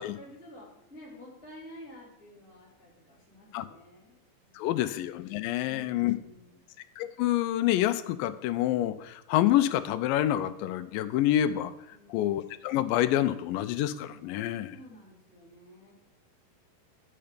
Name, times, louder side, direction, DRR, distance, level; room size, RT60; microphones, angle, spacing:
voice 1, 0.0-4.9 5.5-6.7 11.9-12.4 14.4-15.9, equal, 5° right, -8 dB, 2.9 m, -51 dB
voice 2, 4.6-6.2 7.0-11.7 12.1-14.8, left 13 dB, 85° left, 12 dB, 2.2 m, -27 dB
9.6 x 6.8 x 5.1 m, 0.84 s
omnidirectional pair, 4.0 m